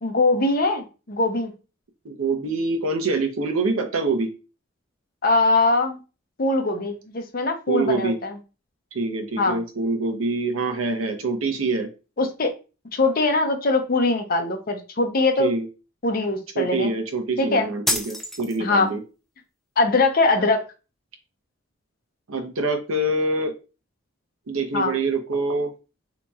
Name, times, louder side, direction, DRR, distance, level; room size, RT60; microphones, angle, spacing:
voice 1, 0.0-1.5 5.2-6.0 6.4-8.4 9.4-9.6 12.2-12.5 12.9-15.5 16.0-16.9 17.4-17.7 18.6-18.9 19.8-20.6 24.7-25.0, left 3 dB, 45° left, 4 dB, 0.6 m, -22 dB
voice 2, 2.0-4.3 7.7-8.2 8.9-11.9 15.4-15.7 16.5-19.0 22.3-23.5 24.5-25.7, right 3 dB, 90° right, 5 dB, 0.7 m, -25 dB
sound 1, 17.9-18.9, left 1 dB, ahead, 0.5 m, -27 dB
4.0 x 2.9 x 2.3 m, 0.31 s
head